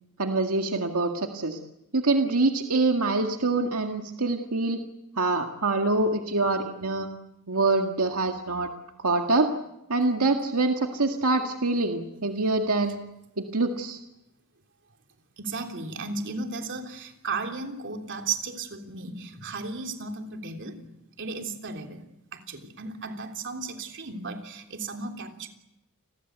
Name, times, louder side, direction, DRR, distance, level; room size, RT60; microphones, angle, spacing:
voice 1, 0.2-1.6 1.9-4.8 5.2-7.1 7.5-8.7 9.0-9.5 9.9-13.0 13.4-14.0, right 3 dB, 85° right, 4 dB, 1.9 m, -25 dB
voice 2, 15.4-20.8 21.2-22.0 22.3-25.5, right 4 dB, 55° right, 4 dB, 3.4 m, -35 dB
30.0 x 21.0 x 8.1 m, 0.88 s
head